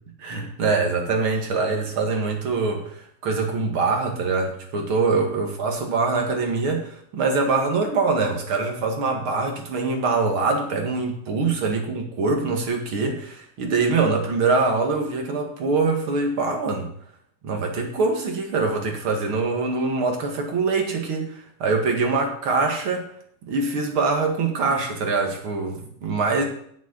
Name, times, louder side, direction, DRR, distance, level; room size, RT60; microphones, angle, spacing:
voice 1, 0.2-16.9 17.4-23.1 23.4-26.4, right 4 dB, 50° right, 2 dB, 2.4 m, -24 dB
9.4 x 7.3 x 7.2 m, 0.67 s
omnidirectional pair, 3.3 m